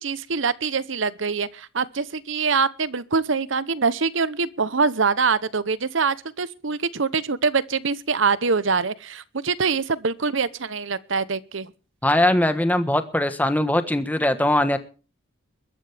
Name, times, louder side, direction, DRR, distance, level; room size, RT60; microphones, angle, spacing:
voice 1, 0.0-11.7, right 4 dB, 65° right, 0.9 m, -24 dB
voice 2, 12.0-14.8, left 1 dB, 10° left, 1.3 m, -21 dB
22.5 x 12.5 x 3.5 m
head